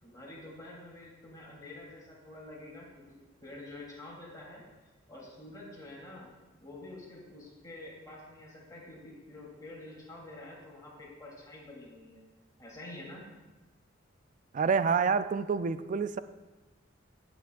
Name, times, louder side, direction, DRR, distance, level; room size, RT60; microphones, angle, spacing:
voice 1, 0.0-4.6 5.1-6.3 6.6-12.2 12.6-13.2, left 2 dB, 20° left, -5 dB, 3.2 m, -48 dB
voice 2, 14.5-16.2, right 5 dB, 40° right, 13 dB, 0.4 m, -27 dB
16.0 x 8.1 x 2.5 m, 1.2 s
head